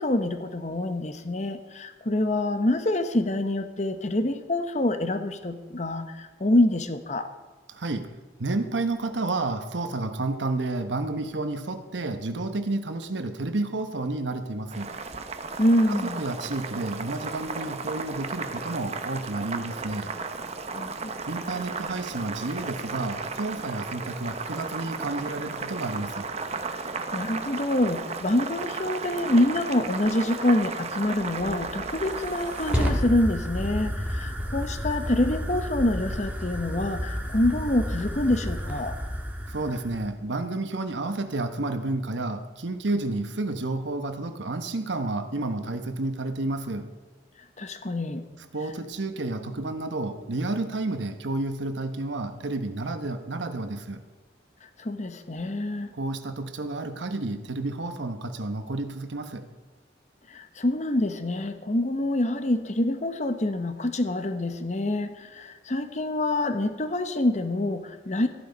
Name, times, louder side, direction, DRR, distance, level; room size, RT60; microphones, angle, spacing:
voice 1, 0.0-7.3 15.6-16.2 20.7-21.2 27.1-39.0 47.6-48.2 54.8-55.9 60.3-68.3, left 1 dB, 40° left, 9 dB, 1.0 m, -26 dB
voice 2, 7.7-8.1 8.4-14.9 15.9-20.1 21.3-26.3 39.5-46.9 48.5-54.0 55.9-59.5, right 2 dB, 85° right, 8 dB, 1.0 m, -31 dB
Boiling, 14.7-32.9, right 4 dB, 35° right, 0.8 m, -34 dB
Fire, 31.2-40.1, equal, 10° right, 1.4 m, -31 dB
14.0 x 10.5 x 5.3 m, 1.3 s
head